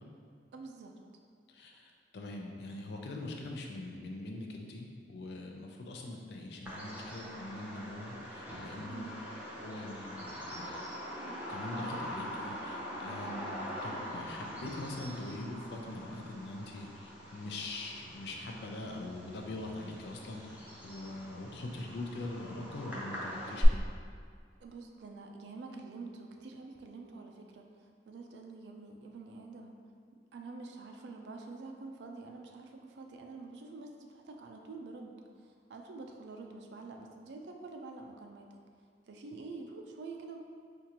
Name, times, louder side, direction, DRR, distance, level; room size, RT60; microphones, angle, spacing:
voice 1, 0.5-0.9 8.9-9.2 24.6-29.7 30.3-38.5 39.1-40.4, right 3 dB, 70° right, 3 dB, 0.4 m, -47 dB
voice 2, 1.5-9.1 9.6-10.7 11.5-23.9, left 2 dB, 65° left, 1 dB, 0.5 m, -43 dB
Bird vocalization bird call bird song, 6.7-23.7, equal, 10° right, 0.7 m, -42 dB
4.4 x 2.4 x 2.8 m, 2.1 s
head